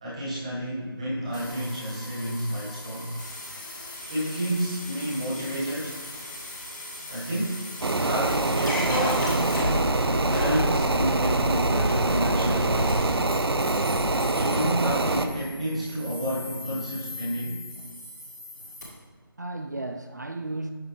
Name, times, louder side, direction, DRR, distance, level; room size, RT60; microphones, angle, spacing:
voice 1, 0.0-3.1 4.1-5.9 7.1-9.6 10.3-13.1 14.2-17.6, right 1 dB, 15° right, -8 dB, 1.5 m, -30 dB
sound 1, 1.3-18.8, left 1 dB, 45° left, 1.9 m, -34 dB
sound 2, 7.8-15.3, right 2 dB, 85° right, 0.7 m, -25 dB
sound 3, 13.4-17.8, left 1 dB, 20° left, 0.6 m, -45 dB
voice 2, 18.6-19.0 19.4-20.7, right 2 dB, 45° right, 5 dB, 0.4 m, -35 dB
10.5 x 3.9 x 3.2 m, 1.5 s
figure-of-eight pair, 175°, 13 cm